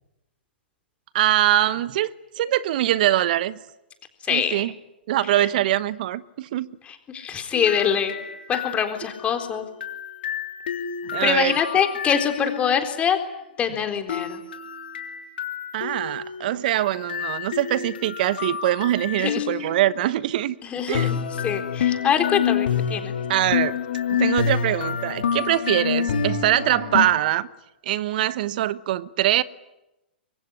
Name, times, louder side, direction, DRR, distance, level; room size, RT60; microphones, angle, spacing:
voice 1, 1.1-2.1 2.4-3.6 4.3-4.7 5.1-6.7 11.0-11.8 15.7-20.6 20.9-21.1 23.3-23.8 24.1-27.5 27.8-29.4, right 13 dB, 55° right, 1.0 m, -23 dB
voice 2, 4.3-4.6 7.1-8.2 8.5-9.7 11.2-13.2 13.6-14.4 19.2-19.4 20.7-21.2 21.4-23.2, left 8 dB, 20° left, 3.9 m, -24 dB
sound 1, 7.5-12.8 14.1-19.9 20.9-27.1, left 8 dB, 65° left, 3.1 m, -28 dB
25.0 x 23.0 x 9.9 m
hypercardioid pair, 115°, 6 cm